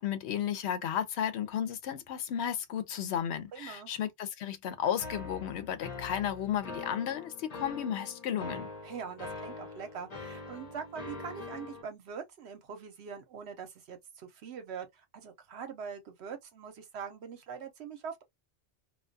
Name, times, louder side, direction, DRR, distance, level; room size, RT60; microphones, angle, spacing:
voice 1, 0.0-8.7, left 9 dB, 75° left, 0.8 m, -33 dB
voice 2, 3.5-3.9 8.8-18.2, right 6 dB, 70° right, 1.0 m, -43 dB
sound 1, 5.0-11.8, left 3 dB, 45° left, 0.7 m, -43 dB
2.3 x 2.3 x 2.5 m
omnidirectional pair, 1.1 m